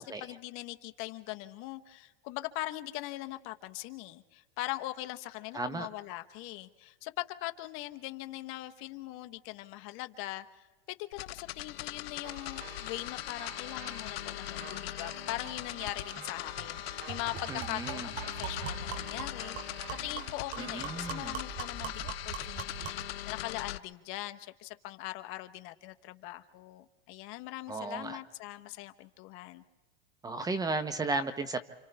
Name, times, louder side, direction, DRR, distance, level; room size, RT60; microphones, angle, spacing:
voice 1, 0.0-29.6, left 17 dB, 45° left, 9 dB, 1.0 m, -41 dB
voice 2, 5.5-5.9 17.5-18.1 20.6-21.4 27.7-28.2 30.2-31.6, right 3 dB, 10° right, 12 dB, 0.8 m, -34 dB
sound 1, 11.1-23.8, left 15 dB, 80° left, 0.9 m, -40 dB
sound 2, 12.2-21.4, right 7 dB, 90° right, 1.9 m, -50 dB
sound 3, 16.2-16.3 16.6-16.7 17.1-23.1, right 6 dB, 40° right, 2.6 m, -41 dB
29.5 x 27.0 x 3.4 m, 1.2 s
supercardioid pair, 140°, 30 cm